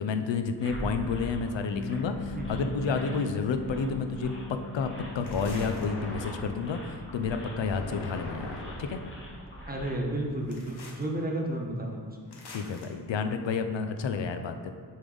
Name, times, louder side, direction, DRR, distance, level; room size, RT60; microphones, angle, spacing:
voice 1, 0.0-9.0 12.5-14.7, left 5 dB, 90° left, 7 dB, 0.6 m, -30 dB
sound 1, 0.6-10.0, equal, 30° left, 1.7 m, -43 dB
Bass guitar, 1.7-7.9, left 5 dB, 50° right, 1.2 m, -43 dB
voice 2, 2.3-2.8 9.7-12.2, right 1 dB, 20° right, -1 dB, 1.0 m, -32 dB
sound 2, 5.2-6.7 7.6-9.1 10.5-11.0 12.3-12.9, left 1 dB, 65° left, 1.3 m, -40 dB
6.9 x 5.3 x 3.9 m, 2.1 s
wide cardioid pair, 95°, 43 cm